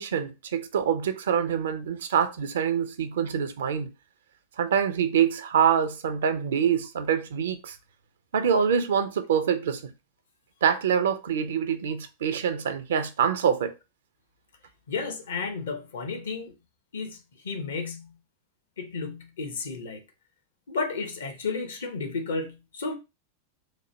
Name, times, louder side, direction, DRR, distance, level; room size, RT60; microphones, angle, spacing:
voice 1, 0.0-3.9 4.6-7.8 8.3-9.8 10.6-13.7, right 8 dB, 60° right, 0.4 m, -25 dB
voice 2, 14.9-16.5 16.9-17.2 17.4-18.1 18.8-20.0 20.7-22.9, left 4 dB, 65° left, 0.7 m, -32 dB
3.0 x 2.1 x 3.0 m
figure-of-eight pair, 90°, 0 cm